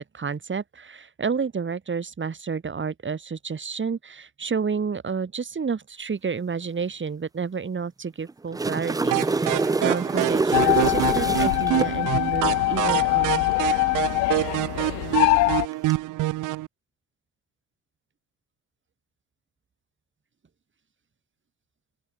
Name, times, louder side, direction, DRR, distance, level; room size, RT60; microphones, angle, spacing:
voice 1, 0.0-13.5, right 5 dB, 30° right, 6.0 m, -30 dB
sound 1, 8.3-11.9 15.7-15.9, right 3 dB, 10° right, 0.7 m, -26 dB
sound 2, 9.1-16.7, right 17 dB, 55° right, 1.5 m, -27 dB
sound 3, 10.5-15.7, left 24 dB, 50° left, 0.4 m, -23 dB
open air
figure-of-eight pair, 50°, 37 cm